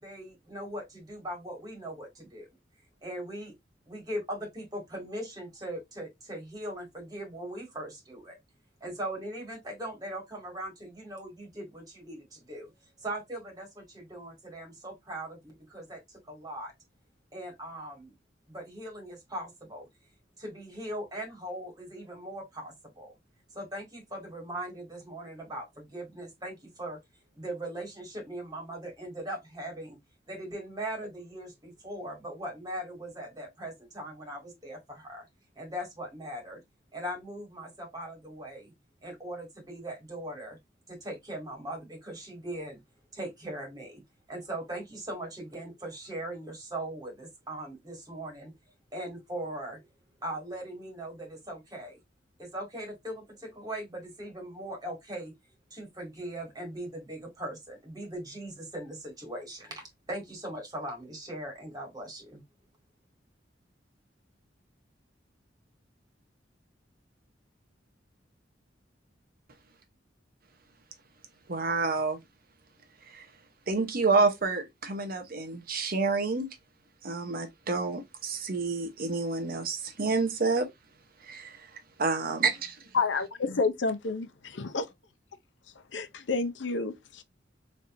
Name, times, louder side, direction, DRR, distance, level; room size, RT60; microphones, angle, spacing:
voice 1, 0.0-2.5 3.0-3.5 3.9-8.3 8.8-12.7 13.0-16.7 17.3-18.1 18.5-19.9 20.4-23.1 23.5-27.0 27.3-30.0 30.3-35.3 35.6-36.6 36.9-38.7 39.0-40.6 40.9-42.8 43.1-44.0 44.3-48.5 48.9-49.9 50.2-52.0 52.4-55.3 55.7-62.4, right 1 dB, 20° right, 2.2 m, -40 dB
voice 2, 71.5-72.2 73.1-73.3 73.7-76.5 77.0-80.6 82.0-82.8, right 4 dB, 55° right, 0.9 m, -28 dB
voice 3, 82.9-84.9 85.9-87.2, left 4 dB, 80° left, 0.6 m, -30 dB
4.2 x 3.4 x 2.6 m
head